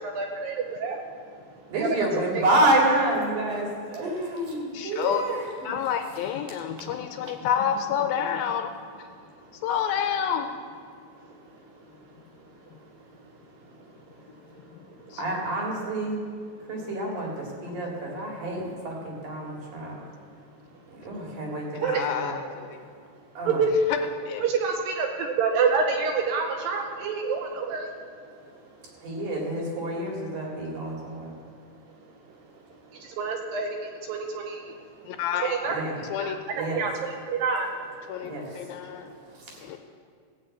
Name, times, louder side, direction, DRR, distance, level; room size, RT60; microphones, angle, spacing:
voice 1, 0.0-1.0 1.7-1.9 2.6-2.7 14.5-14.6 15.1-15.2 21.8-22.0 23.5-23.7 24.4-28.1 32.9-34.8 35.4-37.7, right 5 dB, 75° right, 2 dB, 2.3 m, -28 dB
voice 2, 1.7-5.7 15.2-16.2 16.7-17.3 17.6-19.9 21.0-22.4 23.4-23.6 29.0-31.3 35.7-36.0 36.5-36.8 38.2-38.5, right 1 dB, 55° right, -2 dB, 3.5 m, -28 dB
voice 3, 4.7-5.2 5.7-8.7 9.6-10.5 15.1-15.2 21.8-22.8 24.3-24.4 35.1-35.5 36.1-36.4 38.1-39.1 39.7-39.8, left 8 dB, 80° left, 6 dB, 2.3 m, -28 dB
16.0 x 5.6 x 8.5 m, 2.1 s
omnidirectional pair, 4.5 m